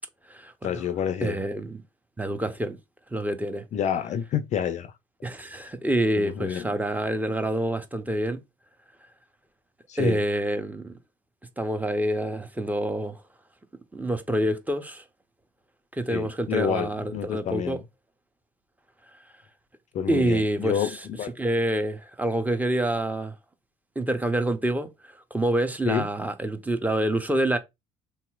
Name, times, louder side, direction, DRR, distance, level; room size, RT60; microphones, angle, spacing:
voice 1, 0.6-1.4 3.7-4.9 6.2-6.7 9.9-10.2 16.1-17.8 19.9-21.4 25.9-26.1, left 8 dB, 45° left, 0.4 m, -28 dB
voice 2, 1.2-1.8 2.2-2.8 3.1-3.6 5.2-8.4 10.0-11.0 11.6-13.2 13.9-15.0 15.9-17.8 20.1-21.0 21.4-23.3 24.0-27.6, right 1 dB, 10° right, 0.6 m, -27 dB
3.6 x 2.8 x 2.3 m
hypercardioid pair, 65°, 17 cm